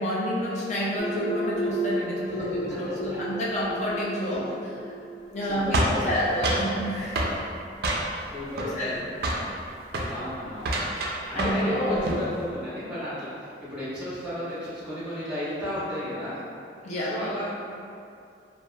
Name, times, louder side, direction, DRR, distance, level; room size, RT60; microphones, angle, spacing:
voice 1, 0.0-4.7 5.3-7.2 8.6-9.3 11.3-12.0 16.8-17.3, equal, 40° left, -6 dB, 0.5 m, -29 dB
sound 1, 1.0-6.4, right 1 dB, 85° left, 0.7 m, -33 dB
voice 2, 5.5-6.7 8.3-9.0 10.1-10.7 11.3-16.4 17.1-17.5, left 1 dB, 5° right, -12 dB, 0.8 m, -34 dB
sound 2, 5.7-6.7 7.2-7.4 7.8-8.3 8.6-9.0 9.2-9.5 9.9-10.1 10.6-11.7 11.9-12.3, right 1 dB, 60° right, 0.3 m, -27 dB
2.7 x 2.1 x 2.2 m, 2.5 s
head